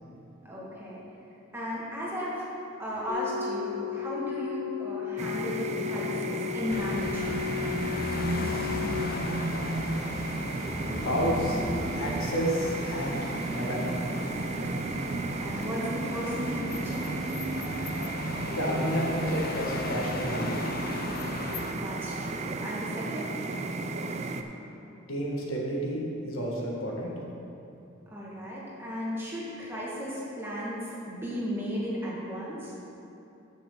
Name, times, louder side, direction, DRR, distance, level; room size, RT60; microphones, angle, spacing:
voice 1, 0.4-1.0 1.5-2.5 2.8-7.5 15.4-17.3 21.7-23.4 28.1-32.7, equal, 10° right, -6 dB, 1.8 m, -35 dB
sound 1, 3.1-8.9, left 10 dB, 10° left, 1.1 m, -35 dB
sound 2, 5.2-24.4, right 2 dB, 35° right, 0.4 m, -33 dB
sound 3, 6.7-21.7, left 3 dB, 45° left, 0.5 m, -37 dB
voice 2, 11.1-11.6 12.0-14.1 18.5-20.7 25.1-27.1, equal, 80° left, -3 dB, 1.8 m, -31 dB
14.5 x 6.2 x 3.9 m, 2.8 s
head